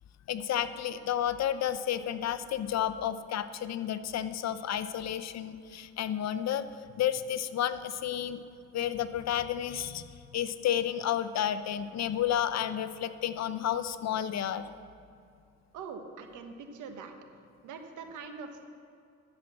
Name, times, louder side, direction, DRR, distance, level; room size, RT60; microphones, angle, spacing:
voice 1, 0.3-6.6 7.0-8.4 8.7-10.0 10.3-14.7, left 10 dB, 60° left, 12 dB, 0.7 m, -31 dB
voice 2, 15.7-17.1 17.6-18.6, right 5 dB, 85° right, 6 dB, 1.3 m, -43 dB
12.5 x 7.5 x 7.3 m, 2.4 s
cardioid pair, 90°, 30 cm